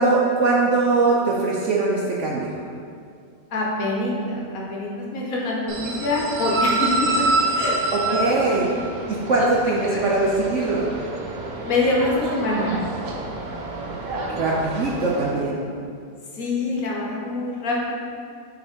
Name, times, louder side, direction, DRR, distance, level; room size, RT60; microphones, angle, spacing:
voice 1, 0.0-2.5 8.1-8.7 9.1-10.9 14.3-15.6, right 3 dB, 60° right, -3 dB, 0.8 m, -21 dB
voice 2, 3.5-6.9 7.2-7.3 7.5-7.8 8.5-9.5 9.9-10.0 11.6-12.8 16.3-17.9, left 2 dB, 60° left, -3 dB, 1.3 m, -25 dB
sound 1, 5.7-15.3, right 2 dB, 85° right, 1.4 m, -27 dB
6.3 x 4.1 x 4.5 m, 2.3 s
omnidirectional pair, 1.8 m